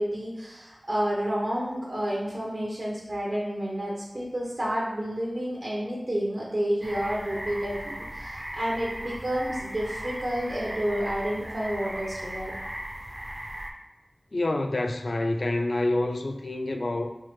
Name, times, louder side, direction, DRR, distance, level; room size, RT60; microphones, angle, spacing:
voice 1, 0.0-12.5, equal, 65° right, -4 dB, 0.7 m, -30 dB
sound 1, 6.8-13.7, right 1 dB, 30° right, 0.4 m, -37 dB
voice 2, 14.3-17.1, left 2 dB, 70° left, 5 dB, 0.3 m, -27 dB
4.5 x 2.1 x 2.9 m, 1.0 s
wide cardioid pair, 55°, 0 cm